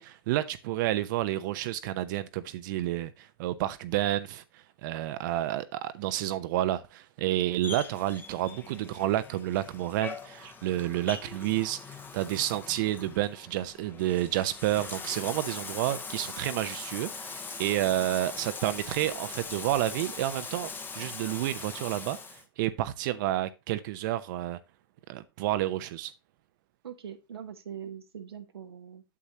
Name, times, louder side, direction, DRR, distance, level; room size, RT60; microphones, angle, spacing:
voice 1, 0.0-4.4 4.8-11.8 12.1-22.2 22.6-24.6 25.1-26.1, right 14 dB, 50° right, 0.8 m, -30 dB
Bathtub (filling or washing), 7.6-22.4, left 4 dB, 15° left, 1.1 m, -41 dB
voice 2, 26.8-29.0, right 8 dB, 85° right, 1.1 m, -42 dB
8.6 x 7.1 x 2.8 m
hypercardioid pair, 120°, 13 cm